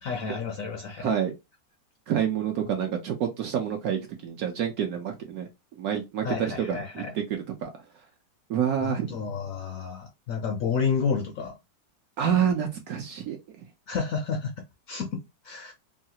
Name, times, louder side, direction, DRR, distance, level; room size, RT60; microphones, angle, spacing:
voice 1, 0.0-1.1 6.2-7.1 8.8-11.6 13.9-15.7, left 5 dB, 75° left, 0.8 m, -31 dB
voice 2, 1.0-1.3 2.1-5.5 5.8-7.7 8.5-9.1 12.2-13.6, right 8 dB, 70° right, 0.9 m, -28 dB
3.1 x 2.3 x 2.8 m
omnidirectional pair, 1.9 m